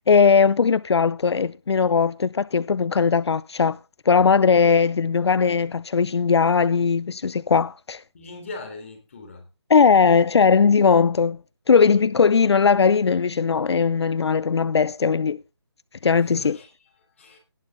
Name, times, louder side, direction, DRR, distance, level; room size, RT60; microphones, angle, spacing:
voice 1, 0.1-3.8 4.1-8.0 9.7-11.4 11.7-15.4 16.0-16.6, left 5 dB, 75° left, 0.5 m, -19 dB
voice 2, 8.1-9.5 16.2-17.4, left 3 dB, 30° left, 3.5 m, -40 dB
18.0 x 6.5 x 3.6 m
hypercardioid pair, 175°, 14 cm